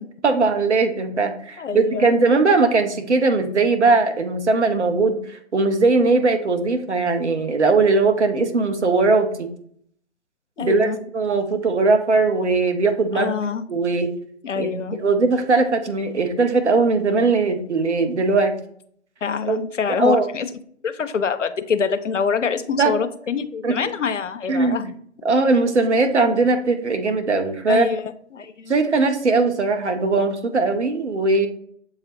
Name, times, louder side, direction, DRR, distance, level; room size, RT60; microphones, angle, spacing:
voice 1, 0.2-9.5 10.6-10.9 11.1-13.4 13.7-14.1 14.6-18.6 19.5-19.6 20.0-20.3 22.8-22.9 23.6-23.8 24.5-24.8 25.2-27.9 28.7-31.5, right 3 dB, 70° right, 6 dB, 0.8 m, -19 dB
voice 2, 1.6-2.1 10.6-11.0 13.1-13.6 14.4-15.0 19.2-20.5 20.8-24.9 27.7-28.8, left 6 dB, 85° left, 11 dB, 0.5 m, -25 dB
7.1 x 2.4 x 2.8 m, 0.63 s
figure-of-eight pair, 140°, 36 cm